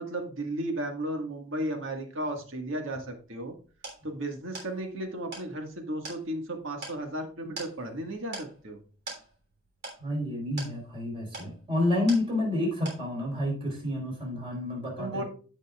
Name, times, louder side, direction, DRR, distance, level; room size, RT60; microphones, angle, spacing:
voice 1, 0.0-3.5 4.0-8.8 15.0-15.2, right 1 dB, 75° right, 4 dB, 1.7 m, -34 dB
sound 1, 3.2-12.6 12.9-13.4, right 2 dB, 55° right, 3.3 m, -45 dB
voice 2, 10.0-15.2, left 1 dB, 30° right, -1 dB, 3.9 m, -29 dB
15.0 x 5.4 x 2.4 m, 0.39 s
head